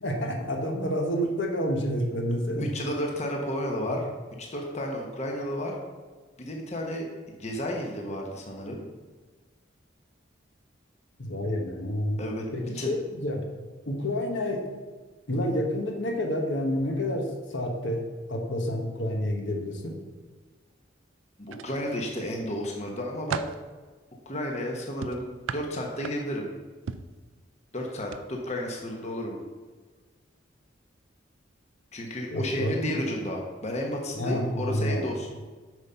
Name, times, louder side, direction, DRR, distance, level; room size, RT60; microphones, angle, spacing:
voice 1, 0.0-2.7 3.9-4.0 11.2-12.2 12.5-13.4 13.9-14.6 15.3-19.9 32.3-32.7 34.1-35.0, equal, 65° left, 2 dB, 1.2 m, -29 dB
voice 2, 2.6-4.0 4.4-5.8 6.4-7.1 7.4-8.8 12.2-12.4 12.8-12.9 21.4-23.4 24.3-26.5 27.7-29.4 31.9-35.3, equal, 35° left, 0 dB, 1.1 m, -32 dB
sound 1, 21.5-22.3 22.8-23.6 25.0-26.4 26.9-27.2 28.0-28.2 28.6-28.8, right 6 dB, 85° right, 0.4 m, -36 dB
7.9 x 5.3 x 5.7 m, 1.4 s
head